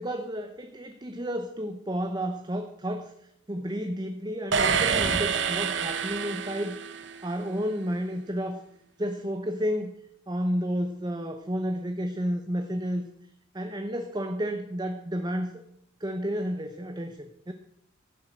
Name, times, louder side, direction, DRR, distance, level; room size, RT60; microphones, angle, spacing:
voice 1, 0.0-6.8 7.2-8.6 9.0-9.9 10.3-13.1 13.5-15.6 16.0-17.5, equal, 20° right, 7 dB, 0.8 m, -31 dB
sound 1, 4.5-7.3, right 6 dB, 65° right, 1.2 m, -27 dB
15.0 x 7.5 x 7.7 m, 0.76 s
head